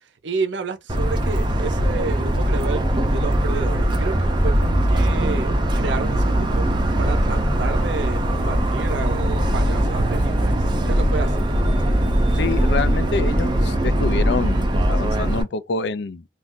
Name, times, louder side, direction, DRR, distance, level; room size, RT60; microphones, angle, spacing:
voice 1, 0.2-6.7 7.0-11.5, right 4 dB, 75° right, 0.6 m, -30 dB
Motor vehicle (road) / Siren, 0.9-15.4, right 1 dB, 25° right, 0.5 m, -20 dB
voice 2, 12.4-16.2, left 4 dB, 70° left, 0.4 m, -27 dB
2.5 x 2.3 x 3.6 m
head